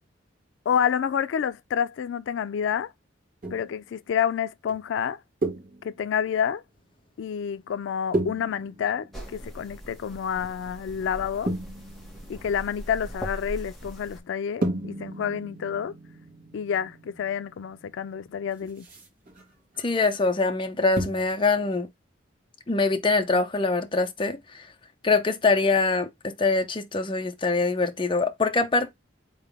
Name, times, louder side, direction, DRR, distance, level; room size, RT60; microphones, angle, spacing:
voice 1, 0.7-2.9 3.5-5.2 5.8-6.6 7.2-11.5 12.3-16.0 16.5-18.9, left 8 dB, 90° left, 0.3 m, -28 dB
sound 1, 3.4-3.8 4.7-4.8 5.4-6.1 8.1-10.3 11.5-13.3 14.6-19.9 20.1-20.3 21.0-21.4 21.7-21.8, right 1 dB, 50° right, 2.2 m, -34 dB
sound 2, 9.1-14.2, equal, ahead, 1.7 m, -40 dB
voice 2, 19.8-21.9 22.7-24.7 25.0-28.9, left 3 dB, 25° left, 0.7 m, -24 dB
4.1 x 3.8 x 3.4 m
head